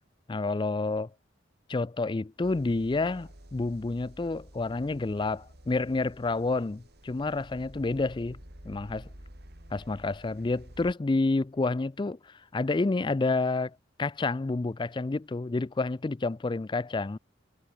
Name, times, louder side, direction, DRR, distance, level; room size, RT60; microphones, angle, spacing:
voice 1, 0.3-1.1 1.7-8.4 8.6-9.1 9.7-17.2, left 3 dB, 25° left, 0.4 m, -29 dB
sound 1, 2.4-10.9, equal, 55° right, 5.2 m, -50 dB
head